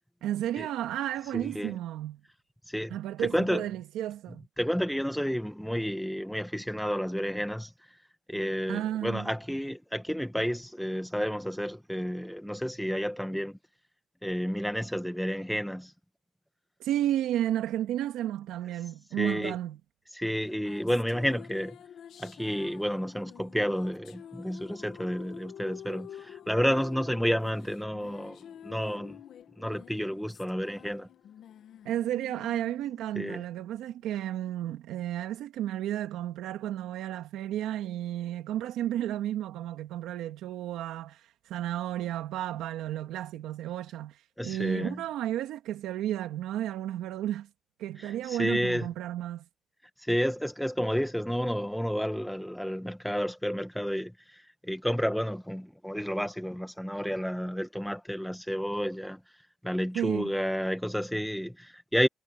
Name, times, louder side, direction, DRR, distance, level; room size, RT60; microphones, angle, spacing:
voice 1, 0.2-2.2 2.9-4.5 8.7-9.3 16.8-19.8 31.8-47.5 47.8-49.4 59.9-60.4, right 12 dB, 90° right, 2.0 m, -32 dB
voice 2, 1.3-1.7 2.7-3.6 4.6-7.7 8.3-13.6 14.2-15.9 19.2-19.5 20.1-21.8 22.2-29.2 29.6-31.1 33.1-33.4 44.4-45.0 48.0-48.9 50.0-59.2 59.6-62.1, equal, ahead, 1.5 m, -31 dB
sound 1, 20.4-34.0, left 9 dB, 70° left, 1.4 m, -49 dB
cardioid pair, 90°, 0 cm